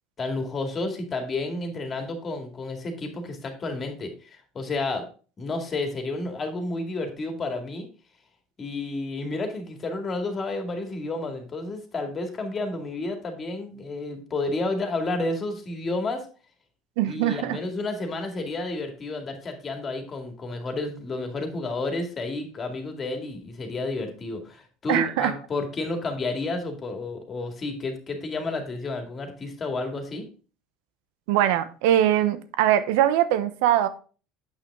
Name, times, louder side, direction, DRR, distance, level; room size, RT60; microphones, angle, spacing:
voice 1, 0.2-5.1 5.4-7.9 8.6-16.3 17.0-30.3, left 2 dB, 30° left, 2.2 m, -31 dB
voice 2, 17.0-17.6 24.9-25.3 31.3-33.9, right 12 dB, 80° right, 0.8 m, -22 dB
8.6 x 5.9 x 3.6 m
supercardioid pair, 95°, 0 cm